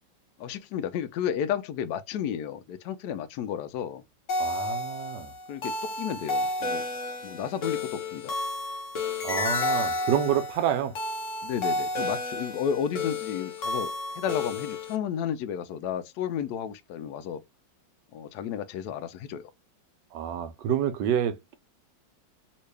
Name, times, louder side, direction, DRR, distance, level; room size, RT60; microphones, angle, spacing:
voice 1, 0.4-4.0 5.5-6.8 7.2-8.3 11.4-17.4 18.1-19.5, left 8 dB, 70° left, 1.0 m, -32 dB
sound 1, 4.3-15.0, left 2 dB, 50° left, 1.1 m, -31 dB
voice 2, 4.4-5.3 9.2-10.9 20.1-21.6, right 9 dB, 75° right, 1.2 m, -28 dB
3.0 x 2.8 x 3.2 m
omnidirectional pair, 2.0 m